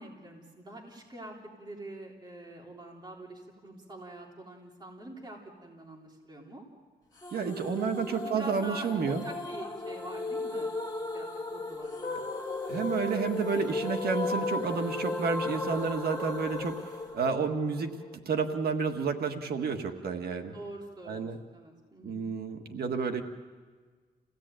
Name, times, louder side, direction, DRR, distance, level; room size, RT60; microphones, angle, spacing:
voice 1, 0.0-6.6 8.1-12.3 20.5-21.3 21.5-22.3, right 1 dB, 25° right, -1 dB, 3.3 m, -45 dB
sound 1, 7.2-18.1, left 3 dB, 25° left, 2.0 m, -35 dB
voice 2, 7.3-9.2 12.7-17.9 18.2-20.6 21.1-21.4 22.0-23.2, right 5 dB, 80° right, 5 dB, 1.6 m, -30 dB
28.5 x 17.0 x 9.0 m, 1.5 s
wide cardioid pair, 150°, 16 cm